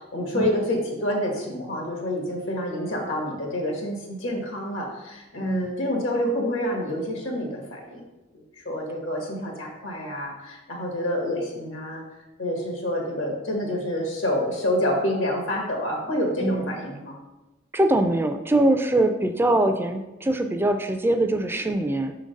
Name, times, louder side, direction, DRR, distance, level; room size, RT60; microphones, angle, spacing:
voice 1, 0.1-8.0 8.3-12.0 12.4-17.2, left 1 dB, 80° left, 0 dB, 1.7 m, -28 dB
voice 2, 5.4-5.8 16.4-16.7 17.7-22.1, right 1 dB, 10° right, 7 dB, 0.3 m, -23 dB
5.6 x 3.8 x 5.1 m, 1.0 s
head